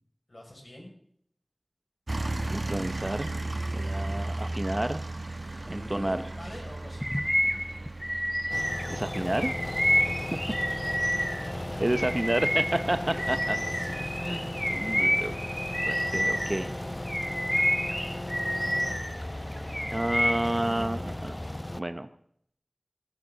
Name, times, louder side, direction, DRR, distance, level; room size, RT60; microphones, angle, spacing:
voice 1, 0.3-0.9 4.1-4.3 5.6-7.1 9.9-10.2 11.0-11.1 12.8-14.4, left 1 dB, 60° left, -1 dB, 5.9 m, -45 dB
sound 1, 2.1-21.2, right 2 dB, 65° right, 1.2 m, -38 dB
voice 2, 2.5-3.3 3.7-5.0 5.7-6.2 8.9-9.5 11.8-13.6 14.0-15.3 15.9-16.7 19.9-21.3 21.8-22.1, right 1 dB, 40° right, 10 dB, 0.8 m, -30 dB
Bird vocalization bird call bird song, 7.0-11.5 11.9-16.7 17.1-19.2 19.5-20.6, equal, 10° left, 0.9 m, -29 dB
sound 2, 8.5-21.8, left 1 dB, 30° left, 0.6 m, -36 dB
15.5 x 15.0 x 3.9 m, 0.65 s
wide cardioid pair, 45°, 0 cm